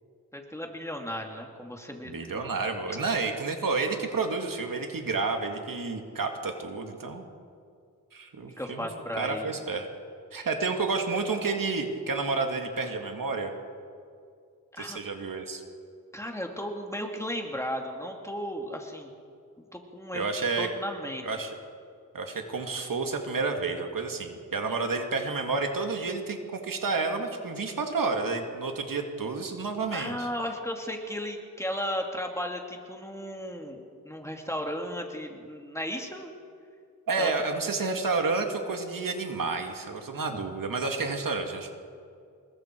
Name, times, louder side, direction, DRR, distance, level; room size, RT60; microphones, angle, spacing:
voice 1, 0.3-2.4 2.9-3.1 8.6-9.5 10.4-10.5 14.7-15.0 16.1-19.1 19.6-20.3 20.6-21.2 29.9-36.3 37.2-37.3, equal, 10° left, 2 dB, 2.6 m, -35 dB
voice 2, 2.0-7.2 8.1-8.9 9.2-9.9 10.3-13.5 14.8-15.6 20.1-20.7 21.2-21.5 22.1-30.3 37.1-41.7, right 4 dB, 70° right, 4 dB, 2.3 m, -30 dB
26.5 x 21.5 x 4.7 m, 2.3 s
wide cardioid pair, 85°, 34 cm